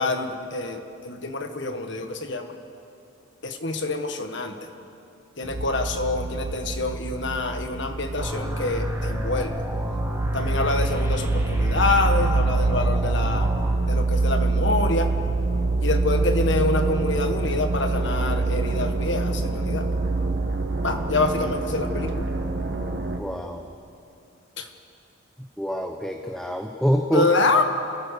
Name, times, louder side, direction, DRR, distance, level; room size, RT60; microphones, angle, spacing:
voice 1, 0.0-2.5 3.4-4.7 5.4-9.5 10.3-13.5 13.9-15.1 15.8-19.9 20.8-22.3 24.6-24.7 27.1-27.6, left 3 dB, 60° left, 6 dB, 1.6 m, -26 dB
sound 1, 5.4-23.2, right 3 dB, 55° right, 1.3 m, -25 dB
sound 2, 8.2-13.7, equal, 10° right, 2.0 m, -29 dB
voice 2, 23.2-23.6 25.6-27.3, equal, 5° left, 4 dB, 0.8 m, -25 dB
28.5 x 14.5 x 6.7 m, 2.6 s
head